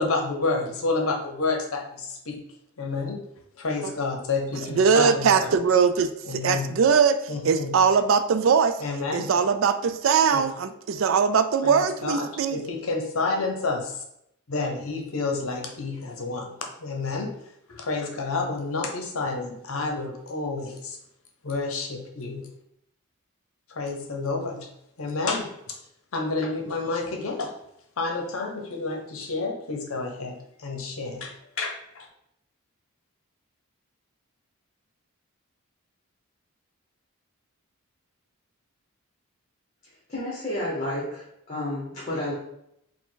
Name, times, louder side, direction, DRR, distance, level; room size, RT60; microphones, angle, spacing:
voice 1, 0.0-2.4 2.8-3.2 3.6-5.5 6.2-6.8 7.3-7.7 8.8-9.3 10.3-10.5 11.6-14.0 14.5-16.5 16.8-17.3 17.7-21.0 21.4-22.5 23.8-24.7 25.0-25.8 26.1-27.5 28.0-30.4 30.6-32.1, left 3 dB, 75° left, 3 dB, 0.7 m, -29 dB
voice 2, 4.7-7.2 7.4-8.8 9.1-12.6, right 6 dB, 65° right, 11 dB, 0.3 m, -21 dB
voice 3, 40.1-42.3, left 1 dB, 30° left, -6 dB, 1.0 m, -31 dB
4.7 x 2.2 x 3.8 m, 0.77 s
head